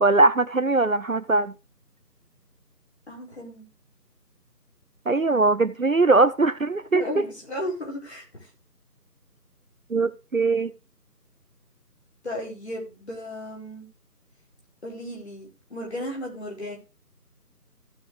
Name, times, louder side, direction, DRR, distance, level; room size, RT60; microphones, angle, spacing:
voice 1, 0.0-1.5 5.1-7.3 9.9-10.7, right 3 dB, 55° right, 0.6 m, -21 dB
voice 2, 3.1-3.7 6.9-8.5 12.2-13.9 14.8-16.8, left 1 dB, 40° left, 4.4 m, -34 dB
16.0 x 6.0 x 3.2 m
figure-of-eight pair, 170°, 49 cm